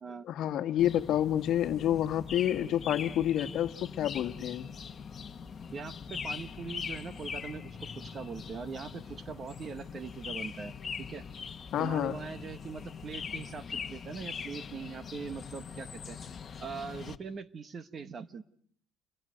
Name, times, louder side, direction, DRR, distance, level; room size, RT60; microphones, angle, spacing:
voice 1, 0.2-4.7 11.7-12.2, left 11 dB, 55° left, 1.5 m, -29 dB
sound 1, 0.8-17.2, left 6 dB, 25° left, 1.5 m, -42 dB
voice 2, 5.7-11.2 11.8-16.2 16.6-18.4, right 5 dB, 30° right, 1.2 m, -42 dB
29.5 x 23.0 x 8.0 m
cardioid pair, 135°, 0 cm